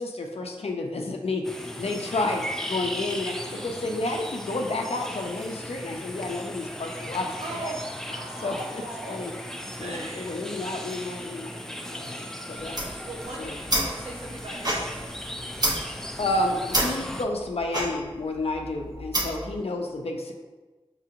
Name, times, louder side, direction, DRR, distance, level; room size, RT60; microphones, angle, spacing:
voice 1, 0.0-7.7 8.4-8.8 9.1-9.3 9.8-11.5 11.8-12.8 13.4-13.6 16.2-20.3, left 2 dB, 85° left, 2 dB, 0.5 m, -30 dB
sound 1, 1.4-17.3, equal, 5° left, 0.3 m, -37 dB
voice 2, 3.4-3.8 7.2-7.8 8.1-9.1 9.8-10.5 10.8-10.9 13.0-15.1 19.1-19.7, right 2 dB, 85° right, -3 dB, 0.8 m, -40 dB
sound 2, 12.6-19.6, right 1 dB, 40° right, 0.8 m, -30 dB
5.4 x 2.8 x 2.5 m, 1.2 s
wide cardioid pair, 55°, 10 cm